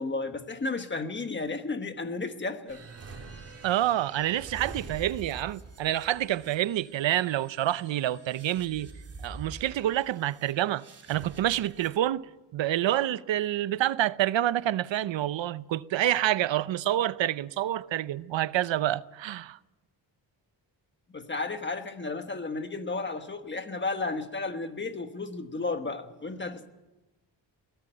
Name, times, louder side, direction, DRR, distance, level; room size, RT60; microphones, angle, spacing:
voice 1, 0.0-2.9 21.1-26.7, left 3 dB, 25° left, 1.3 m, -33 dB
sound 1, 2.7-12.0, right 3 dB, 35° right, 3.2 m, -46 dB
voice 2, 3.6-8.9 9.2-19.6, right 13 dB, 85° right, 0.7 m, -28 dB
22.0 x 17.5 x 9.0 m
wide cardioid pair, 175°, 44 cm